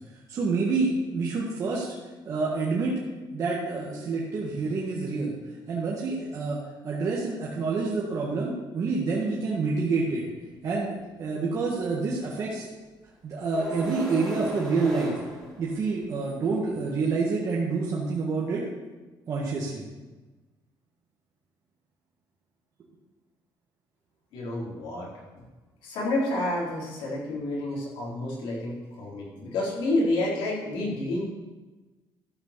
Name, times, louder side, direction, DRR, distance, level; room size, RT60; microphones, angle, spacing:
voice 1, 0.3-1.9 2.3-3.0 3.3-5.3 5.7-6.6 6.8-10.2 10.6-12.7 13.2-15.1 15.6-18.6 19.3-19.8, right 4 dB, 40° right, -5 dB, 1.9 m, -27 dB
sound 1, 13.5-16.2, right 1 dB, 10° left, 2.5 m, -36 dB
voice 2, 24.3-25.1 25.8-31.3, left 2 dB, 80° left, -4 dB, 4.3 m, -29 dB
13.0 x 5.5 x 6.9 m, 1.2 s
cardioid pair, 170°, 8 cm